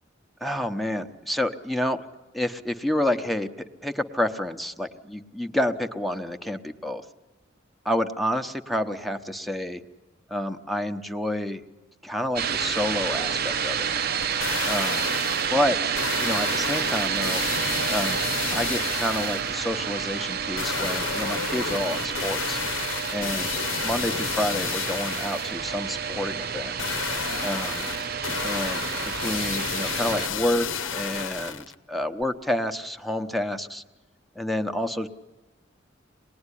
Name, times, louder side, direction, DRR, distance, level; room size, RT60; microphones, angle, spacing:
voice 1, 0.4-2.0 2.3-7.0 7.8-9.8 10.3-11.6 12.0-13.9 14.6-15.0 15.5-15.9 16.2-17.4 17.9-18.2 18.5-22.6 23.1-23.5 23.8-26.7 27.4-27.9 28.4-28.8 29.2-30.7 30.9-33.8 34.4-35.1, left 1 dB, ahead, 6 dB, 0.9 m, -29 dB
sound 1, 12.4-30.3, right 7 dB, 55° right, 0.8 m, -29 dB
sound 2, 14.2-15.5 15.9-19.5 20.6-25.5 26.8-31.7 32.2-32.3, left 6 dB, 85° left, 1.0 m, -31 dB
26.0 x 19.5 x 9.9 m, 1.2 s
head